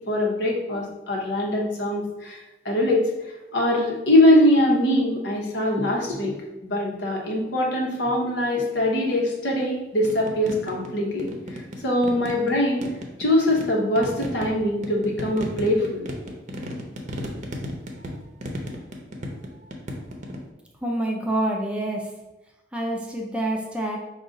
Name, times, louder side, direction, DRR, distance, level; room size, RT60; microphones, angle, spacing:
voice 1, 0.1-2.4 2.6-3.1 3.5-6.3 6.6-11.3 11.8-12.9 13.2-16.0, left 1 dB, 80° left, -2 dB, 1.1 m, -22 dB
sound 1, 10.0-10.9 11.2-12.5 12.8-20.5, equal, 45° right, 0.6 m, -34 dB
voice 2, 20.8-22.1 22.7-24.0, right 1 dB, 5° right, -1 dB, 0.5 m, -27 dB
5.1 x 2.4 x 3.8 m, 1.0 s
head